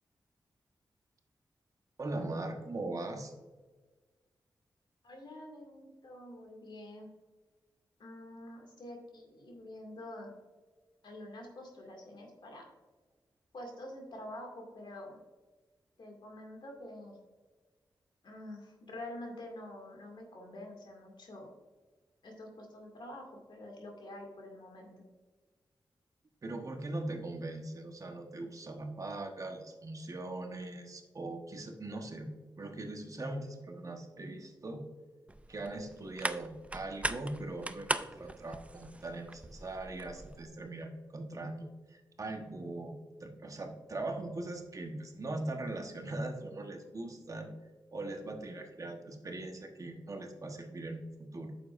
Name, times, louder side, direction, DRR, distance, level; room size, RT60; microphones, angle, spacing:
voice 1, 2.0-3.3 26.4-32.3 32.6-34.8 35.5-42.9 43.2-47.5 47.9-51.0 51.3-51.5, right 2 dB, 45° right, 4 dB, 1.1 m, -40 dB
voice 2, 5.0-7.1 8.0-10.3 11.0-12.7 13.5-15.2 16.0-17.2 18.2-21.5 22.2-25.0, left 1 dB, 70° left, 1 dB, 2.2 m, -47 dB
sound 1, 35.3-40.5, right 2 dB, 15° right, 0.4 m, -40 dB
9.2 x 7.1 x 2.5 m, 1.3 s
wide cardioid pair, 85°, 8 cm